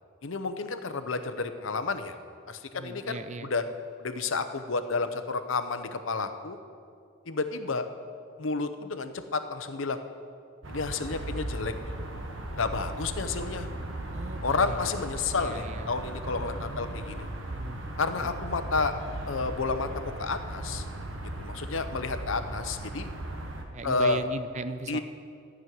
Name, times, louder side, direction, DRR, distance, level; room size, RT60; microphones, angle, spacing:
voice 1, 0.2-2.1 2.5-3.6 4.0-6.6 7.3-7.9 8.4-10.0 10.7-11.7 12.6-13.7 14.4-17.3 18.0-18.9 19.3-19.9 20.2-20.8 21.4-23.1 23.8-24.2 24.9-25.0, left 4 dB, 70° left, 9 dB, 0.7 m, -30 dB
voice 2, 2.7-3.5 14.1-15.0 15.4-15.9 16.3-16.5 17.5-17.8 18.1-18.3 23.7-25.0, right 3 dB, 35° right, 11 dB, 0.4 m, -38 dB
sound 1, 10.6-23.6, right 1 dB, 65° right, 1.4 m, -37 dB
13.0 x 6.3 x 9.2 m, 2.4 s
head